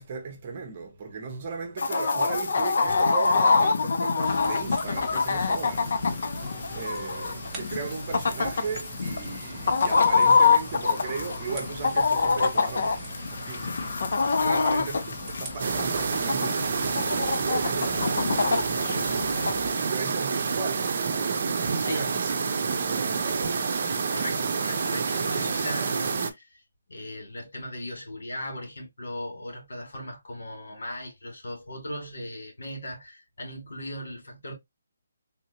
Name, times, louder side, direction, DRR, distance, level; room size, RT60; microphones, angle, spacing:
voice 1, 0.0-6.0 6.7-14.0 14.4-18.4 19.6-23.6, right 4 dB, 30° right, 1.1 m, -37 dB
Chicken rooster, 1.8-19.5, left 4 dB, 60° left, 0.7 m, -25 dB
sound 1, 4.2-19.7, right 2 dB, 10° right, 1.0 m, -41 dB
voice 2, 14.4-14.9 19.7-19.8 21.8-22.1 24.1-26.6 26.9-34.5, left 1 dB, 85° left, 2.4 m, -38 dB
sound 2, 15.6-26.3, right 5 dB, 45° right, 0.8 m, -28 dB
3.7 x 2.9 x 2.9 m
hypercardioid pair, 170°, 0 cm